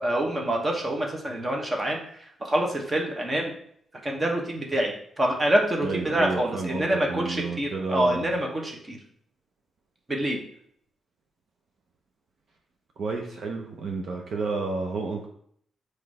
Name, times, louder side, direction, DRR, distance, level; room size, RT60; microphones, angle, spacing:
voice 1, 0.0-2.0 2.4-3.5 4.0-9.0 10.1-10.4, right 1 dB, 20° right, 1 dB, 1.1 m, -26 dB
voice 2, 5.8-8.3 13.0-15.3, right 3 dB, 55° right, 1 dB, 0.7 m, -31 dB
5.9 x 3.3 x 4.8 m, 0.65 s
wide cardioid pair, 150°, 0 cm